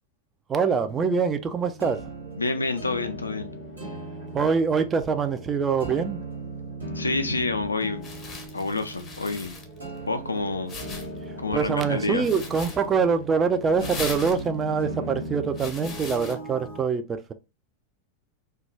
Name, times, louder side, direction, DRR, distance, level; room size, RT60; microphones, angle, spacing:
voice 1, 0.5-2.0 4.3-6.2 11.5-17.3, right 5 dB, 20° right, 0.3 m, -24 dB
sound 1, 0.7-16.8, right 2 dB, 80° right, 0.9 m, -38 dB
sound 2, 2.2-16.1, right 6 dB, 55° right, 1.0 m, -50 dB
voice 2, 2.4-3.5 6.9-8.1 8.5-9.6 10.0-10.8 11.4-12.3, left 3 dB, 80° left, 0.4 m, -28 dB
sound 3, 7.6-16.4, left 4 dB, 25° left, 0.6 m, -41 dB
2.3 x 2.2 x 3.0 m
figure-of-eight pair, 90°, 0 cm